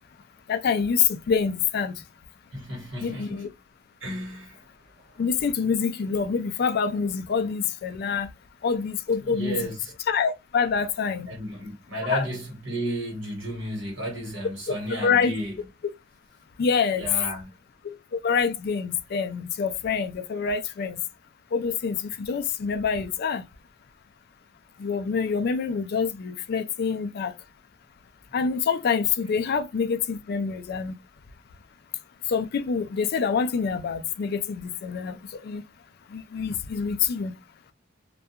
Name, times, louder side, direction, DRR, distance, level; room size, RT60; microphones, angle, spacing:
voice 1, 0.5-1.9 3.0-3.5 5.2-8.3 8.6-9.7 10.1-11.3 12.1-12.3 14.7-14.8 15.0-15.3 16.6-17.1 17.8-21.0 21.5-23.4 24.8-27.3 28.3-30.9 32.3-35.6 36.1-37.3, left 6 dB, 50° left, 0.3 m, -26 dB
voice 2, 2.5-3.5 4.0-4.6 9.2-9.9 11.3-15.6 17.0-17.5, equal, 65° right, 1.2 m, -33 dB
2.3 x 2.2 x 2.7 m
head